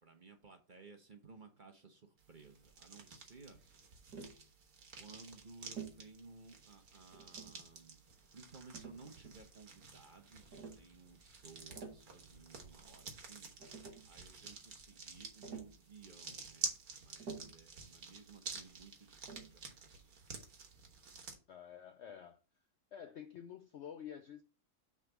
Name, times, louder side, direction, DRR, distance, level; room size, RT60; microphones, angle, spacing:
voice 1, 0.0-3.6 4.9-8.0 8.3-13.5 14.0-20.0, right 4 dB, 35° right, 1.0 m, -58 dB
sound 1, 2.2-21.3, right 5 dB, 70° right, 1.7 m, -50 dB
Tap, 4.1-4.4 5.8-6.1 7.1-7.7 8.7-9.5 10.5-10.9 11.6-12.1 13.2-13.3 13.6-14.1 15.4-15.8 17.2-17.7 19.3-19.6, right 5 dB, 90° right, 1.9 m, -49 dB
voice 2, 21.5-22.4 22.9-24.4, left 9 dB, 65° left, 0.7 m, -49 dB
6.4 x 3.7 x 5.9 m
omnidirectional pair, 1.6 m